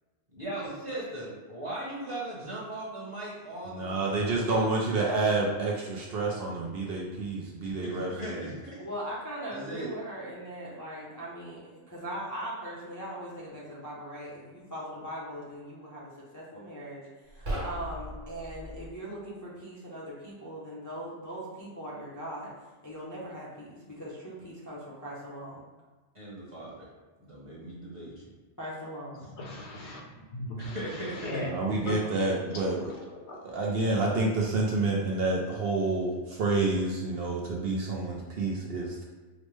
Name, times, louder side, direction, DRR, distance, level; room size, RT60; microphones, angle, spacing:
voice 1, 0.3-4.7 7.8-8.8 9.5-9.9 26.1-26.9 27.2-28.3 30.6-31.3, right 1 dB, 30° right, -7 dB, 1.1 m, -39 dB
voice 2, 3.7-8.5 31.4-32.9 33.4-39.0, right 3 dB, 60° right, -2 dB, 0.7 m, -29 dB
voice 3, 8.8-22.5 22.8-25.7 28.6-29.2, right 1 dB, 20° left, -7 dB, 0.6 m, -40 dB
sound 1, 17.3-18.9, equal, 85° right, 1.4 m, -37 dB
voice 4, 29.4-31.9 32.9-33.4, left 1 dB, 70° left, -2 dB, 1.1 m, -38 dB
5.1 x 2.1 x 3.2 m, 1.3 s
omnidirectional pair, 1.2 m